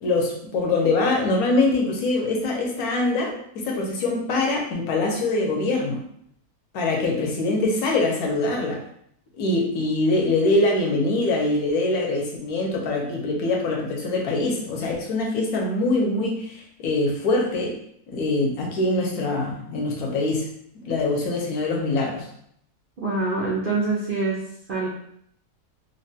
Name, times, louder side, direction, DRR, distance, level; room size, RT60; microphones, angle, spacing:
voice 1, 0.0-6.0 6.7-8.8 9.4-17.8 18.1-20.5 20.8-22.3, left 2 dB, 70° left, 0 dB, 1.1 m, -23 dB
voice 2, 23.0-24.4 24.7-24.9, right 3 dB, 70° right, -6 dB, 0.5 m, -25 dB
3.2 x 2.2 x 2.7 m, 0.69 s
omnidirectional pair, 1.7 m